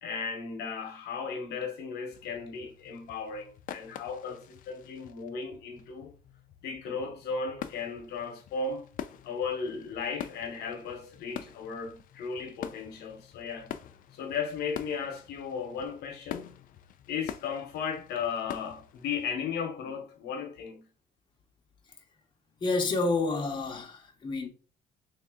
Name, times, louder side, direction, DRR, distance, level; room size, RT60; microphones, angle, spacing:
voice 1, 0.0-6.1 6.6-8.9 9.2-13.7 14.1-16.6 17.1-20.9, left 5 dB, 75° left, 0.9 m, -35 dB
sound 1, 2.1-19.3, left 10 dB, 55° left, 0.4 m, -46 dB
voice 2, 22.6-24.5, left 3 dB, 25° left, 0.8 m, -29 dB
3.3 x 2.7 x 3.6 m
cardioid pair, 110°, 17 cm